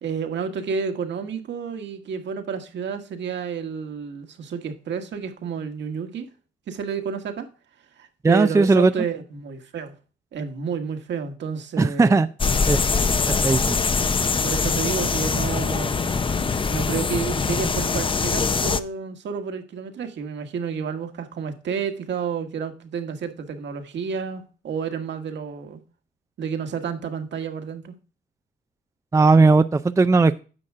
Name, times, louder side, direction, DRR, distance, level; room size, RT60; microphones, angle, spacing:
voice 1, 0.0-6.3 6.7-7.5 8.0-9.9 10.3-12.2 14.4-16.1 16.7-25.8 26.4-27.9, right 6 dB, 65° right, 1.8 m, -30 dB
voice 2, 8.2-8.9 11.8-12.3 12.7-12.8 13.4-13.8 29.1-30.4, right 3 dB, 15° right, 0.5 m, -17 dB
sound 1, 12.4-18.8, left 4 dB, 25° left, 0.7 m, -23 dB
9.9 x 6.3 x 3.7 m
cardioid pair, 90°, 20 cm